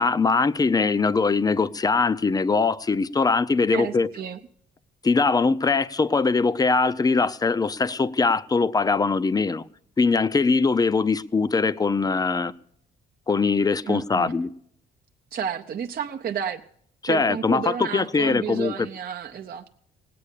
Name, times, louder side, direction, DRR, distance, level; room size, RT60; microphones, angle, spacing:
voice 1, 0.0-4.1 5.0-9.6 10.0-12.5 13.3-14.5 17.0-18.9, left 4 dB, 20° left, 0.5 m, -22 dB
voice 2, 3.7-4.4 13.9-14.3 15.3-16.6 17.1-19.7, right 8 dB, 50° right, 0.7 m, -31 dB
18.5 x 8.5 x 6.6 m
cardioid pair, 90°, 20 cm